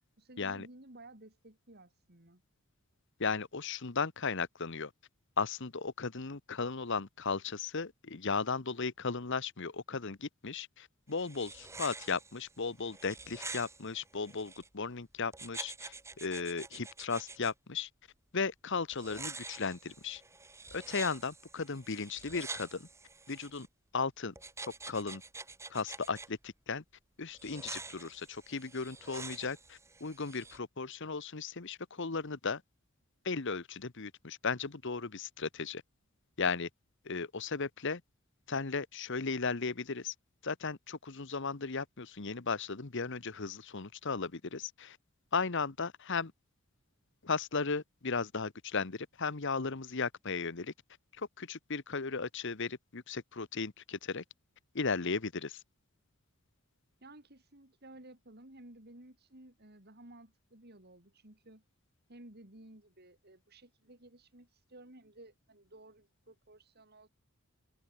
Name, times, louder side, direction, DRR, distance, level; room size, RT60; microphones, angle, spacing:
voice 1, 0.2-2.4 57.0-61.6 62.1-67.1, right 1 dB, 50° right, 3.6 m, -55 dB
voice 2, 3.2-4.9 5.4-15.9 16.2-17.9 18.3-20.2 20.7-22.9 23.3-23.7 23.9-24.3 24.9-25.2 25.7-26.8 27.2-32.6 33.2-35.8 36.4-36.7 37.1-38.0 38.5-40.1 40.4-45.0 45.3-46.3 47.2-50.7 51.4-54.2 54.7-55.6, left 4 dB, 55° left, 1.2 m, -36 dB
sound 1, 11.1-14.7 15.3-17.5 18.9-23.7 24.4-26.3 27.3-30.6, right 3 dB, 15° right, 5.5 m, -47 dB
open air
head